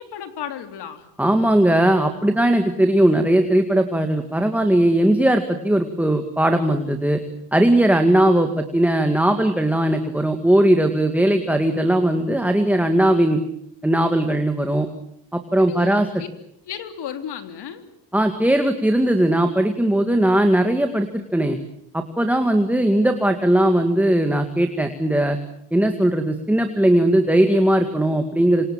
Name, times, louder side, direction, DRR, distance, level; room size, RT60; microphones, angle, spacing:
voice 1, 0.0-1.1 15.6-16.3 16.7-17.8, left 9 dB, 75° left, 8 dB, 3.6 m, -34 dB
voice 2, 1.2-7.2 7.5-13.4 13.8-14.9 15.3-16.1 18.1-21.6 21.9-25.4 25.7-28.7, right 1 dB, 5° right, 6 dB, 2.1 m, -18 dB
27.5 x 26.5 x 7.5 m, 0.71 s
cardioid pair, 140°, 41 cm